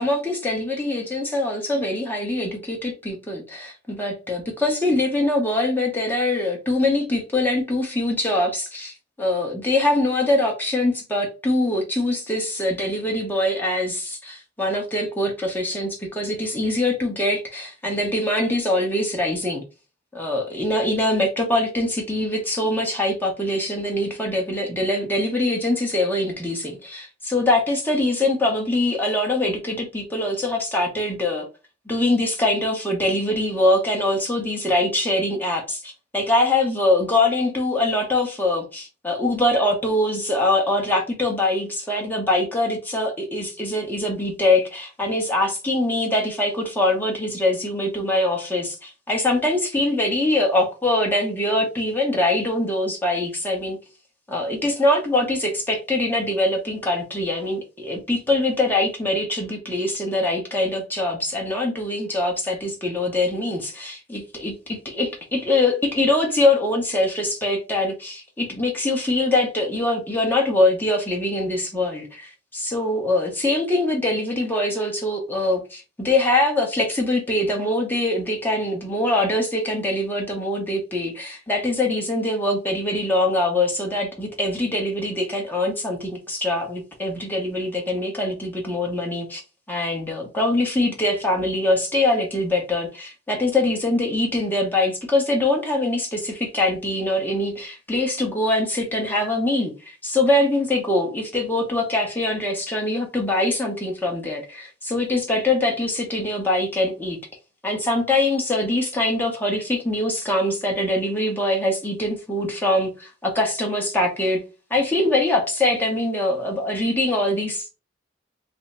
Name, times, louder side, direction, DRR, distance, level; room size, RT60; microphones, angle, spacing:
voice 1, 0.0-19.6 20.1-31.5 31.9-53.8 54.3-89.4 89.7-107.2 107.6-114.4 114.7-117.7, left 1 dB, 10° left, 0.8 m, -23 dB
3.4 x 2.1 x 4.0 m
head